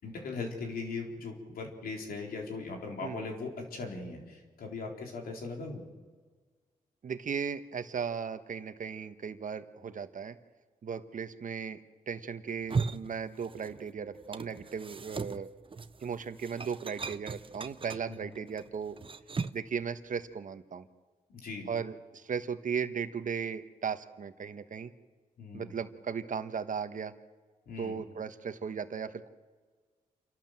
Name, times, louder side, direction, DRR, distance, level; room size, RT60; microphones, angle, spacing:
voice 1, 0.0-5.8 18.1-18.3 21.3-21.7 25.4-25.7 27.7-28.0, left 3 dB, 90° left, 1 dB, 4.0 m, -39 dB
voice 2, 7.0-10.4 10.8-11.8 12.1-15.5 16.0-19.0 19.5-20.9 21.7-24.9 25.5-27.1 27.8-29.3, right 6 dB, 60° right, 10 dB, 1.3 m, -36 dB
sound 1, 12.5-13.9 14.2-19.7, right 4 dB, 35° right, 0.8 m, -38 dB
28.5 x 12.0 x 7.7 m, 1.5 s
cardioid pair, 65°, 15 cm